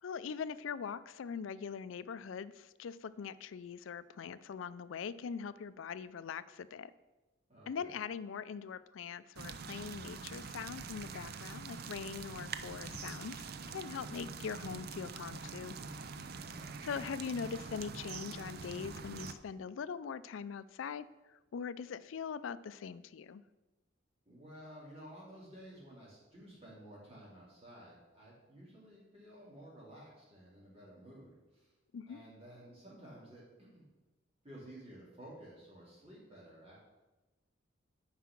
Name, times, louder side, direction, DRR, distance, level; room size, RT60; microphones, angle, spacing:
voice 1, 0.0-6.9 7.7-15.8 16.8-23.4 31.9-32.2, left 6 dB, 80° left, 16 dB, 0.4 m, -42 dB
voice 2, 7.5-7.9 16.3-16.8 24.3-31.7 32.1-33.9 34.4-36.8, right 1 dB, 30° right, -6 dB, 2.7 m, -53 dB
sound 1, 9.4-19.3, right 5 dB, 50° right, 0.5 m, -45 dB
9.3 x 4.9 x 5.9 m, 1.1 s
head